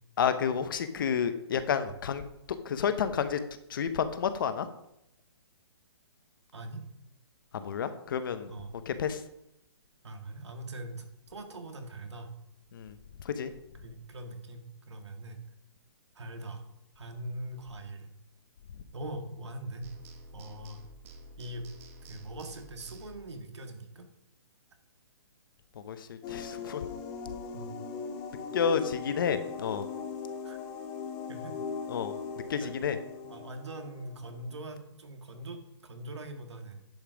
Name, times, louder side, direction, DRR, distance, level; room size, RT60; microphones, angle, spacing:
voice 1, 0.2-2.2 2.5-3.4 3.7-4.7 7.5-8.5 8.9-9.2 12.7-12.9 13.2-13.5 25.9-26.8 28.5-29.9 31.9-32.1 32.5-33.0, left 7 dB, 50° left, 11 dB, 0.9 m, -30 dB
voice 2, 10.0-12.3 13.8-15.4 16.2-16.6 17.0-18.1 18.9-19.9 20.3-20.8 21.4-21.7 22.1-24.0 27.5-27.7 30.4-30.6 31.3-31.5 32.6-32.7 33.2-36.9, right 1 dB, 85° right, 6 dB, 1.9 m, -42 dB
sound 1, 19.8-23.4, right 2 dB, 30° right, 1.0 m, -50 dB
sound 2, 26.2-34.6, left 6 dB, 20° left, 0.8 m, -39 dB
10.5 x 5.5 x 5.0 m, 0.82 s
hypercardioid pair, 160°, 14 cm